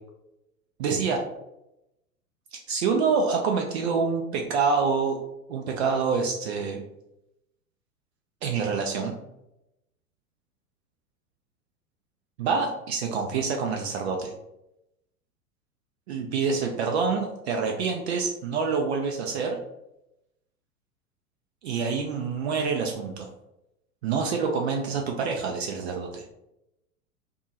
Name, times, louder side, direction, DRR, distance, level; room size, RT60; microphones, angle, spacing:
voice 1, 0.8-1.2 2.7-5.2 5.5-6.8 8.4-9.1 12.4-14.3 16.1-19.6 21.6-23.3 24.0-26.2, right 5 dB, 50° right, 2 dB, 0.4 m, -26 dB
2.6 x 2.3 x 2.7 m, 0.87 s
figure-of-eight pair, 90°, 43 cm